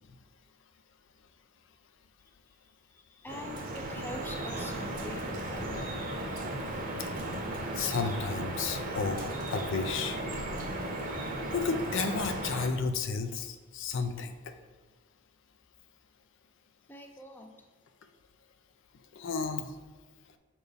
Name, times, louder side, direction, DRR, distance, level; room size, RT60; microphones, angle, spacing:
voice 1, 2.9-5.8 16.9-17.7, left 1 dB, 10° left, 3 dB, 0.5 m, -44 dB
Drip, 3.3-12.7, right 1 dB, 40° right, 0.8 m, -36 dB
voice 2, 7.7-10.2 11.5-14.5 19.2-19.7, left 4 dB, 65° left, 7 dB, 0.5 m, -32 dB
6.7 x 4.3 x 3.4 m, 1.3 s
head